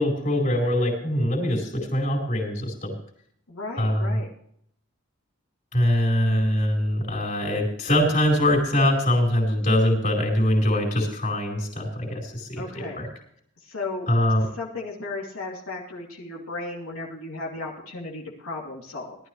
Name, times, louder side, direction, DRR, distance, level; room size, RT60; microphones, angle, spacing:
voice 1, 0.0-2.9 3.8-4.2 5.7-13.1 14.1-14.5, left 1 dB, 40° left, 0 dB, 4.5 m, -23 dB
voice 2, 3.5-4.3 12.6-13.0 13.6-14.1 14.6-19.2, left 3 dB, 80° left, -3 dB, 2.8 m, -35 dB
19.0 x 12.5 x 3.2 m, 0.68 s
head